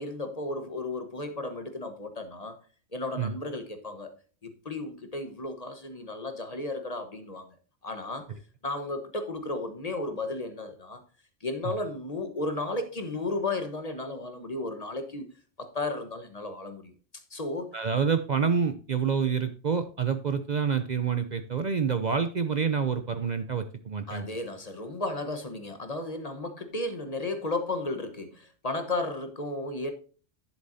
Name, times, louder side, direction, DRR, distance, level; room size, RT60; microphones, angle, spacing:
voice 1, 0.0-2.6 2.9-4.1 4.4-7.5 7.8-8.3 8.6-11.0 11.4-15.3 15.6-16.9 17.3-17.8 24.1-29.9, left 2 dB, 35° left, 1.3 m, -34 dB
voice 2, 17.7-24.3, right 6 dB, 45° right, 0.7 m, -27 dB
11.0 x 7.4 x 2.7 m
omnidirectional pair, 1.2 m